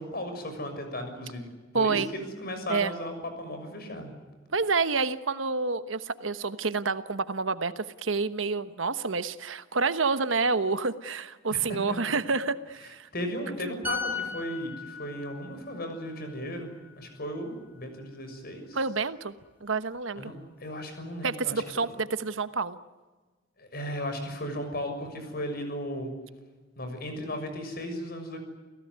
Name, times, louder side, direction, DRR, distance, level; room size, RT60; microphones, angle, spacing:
voice 1, 0.0-1.5 1.7-4.1 11.5-12.0 13.1-16.7 17.0-18.8 20.1-21.9 23.6-26.1 26.8-28.4, equal, 55° left, 6 dB, 6.6 m, -36 dB
voice 2, 1.7-2.1 2.7-2.9 4.5-13.1 13.6-13.8 18.7-19.3 19.6-20.3 21.2-22.8, right 4 dB, 80° right, 12 dB, 1.2 m, -28 dB
sound 1, 13.8-17.4 17.8-18.0, left 4 dB, 10° right, 7.9 m, -38 dB
29.5 x 17.0 x 9.7 m, 1.3 s
head